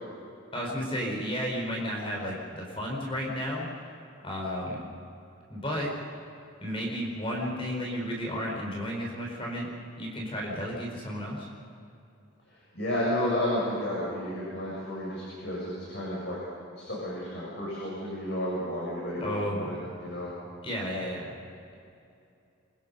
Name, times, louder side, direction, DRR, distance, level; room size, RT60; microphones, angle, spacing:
voice 1, 0.5-3.7 4.2-4.8 5.5-5.9 6.6-9.7 10.0-11.5 19.2-19.9 20.6-21.3, equal, 25° left, -2 dB, 4.9 m, -33 dB
voice 2, 12.7-16.4 16.7-20.3, left 1 dB, 60° left, -6 dB, 7.3 m, -32 dB
27.5 x 23.5 x 5.6 m, 2.6 s
head